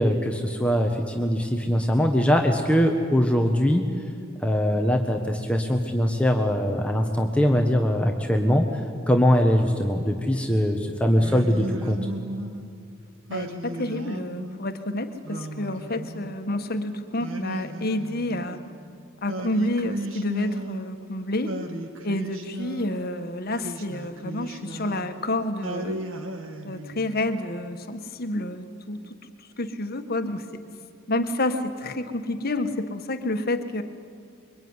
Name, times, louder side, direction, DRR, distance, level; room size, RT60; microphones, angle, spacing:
voice 1, 0.0-3.9 4.4-12.0, equal, 5° left, 3 dB, 1.3 m, -22 dB
Singing, 11.2-12.7 13.3-14.6 15.2-16.6 17.2-18.7 19.3-21.1 21.5-23.1 23.6-25.2 25.6-27.2, right 1 dB, 75° right, 2.1 m, -35 dB
voice 2, 13.3-18.6 19.2-21.5 22.0-26.0 26.6-30.6 31.1-33.8, left 1 dB, 50° left, 8 dB, 1.6 m, -29 dB
25.5 x 23.5 x 9.8 m, 2.3 s
head